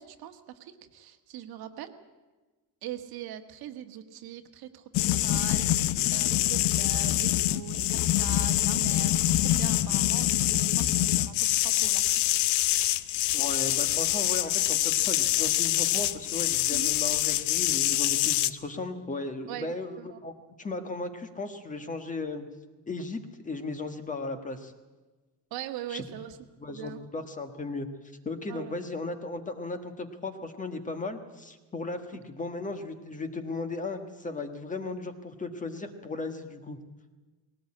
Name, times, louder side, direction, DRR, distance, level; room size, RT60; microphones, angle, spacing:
voice 1, 0.0-1.9 2.8-12.2 16.7-16.9 19.5-20.2 25.5-26.4 26.7-27.0 28.5-28.8, right 11 dB, 60° right, 8 dB, 1.6 m, -42 dB
sound 1, 4.9-18.5, left 14 dB, 80° left, 1.0 m, -25 dB
voice 2, 13.3-20.3 20.6-22.4 22.9-24.7 25.9-26.0 26.6-27.9 28.2-36.8, left 3 dB, 20° left, 8 dB, 1.5 m, -36 dB
19.5 x 18.5 x 8.7 m, 1.2 s
cardioid pair, 155°, 41 cm